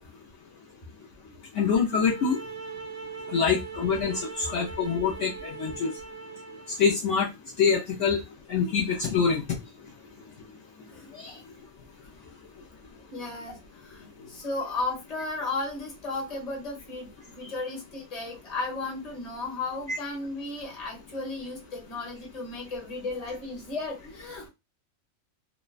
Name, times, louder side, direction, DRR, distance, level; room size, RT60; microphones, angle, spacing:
voice 1, 1.5-2.4 3.3-5.9 6.8-7.3 7.6-8.2 8.5-9.6 11.1-11.4 19.9-20.0, left 6 dB, 70° left, 0.9 m, -25 dB
sound 1, 1.9-6.8, right 5 dB, 70° right, 1.0 m, -41 dB
voice 2, 10.9-11.3 13.1-24.5, left 3 dB, 30° left, 1.0 m, -35 dB
3.2 x 2.1 x 2.3 m
omnidirectional pair, 1.4 m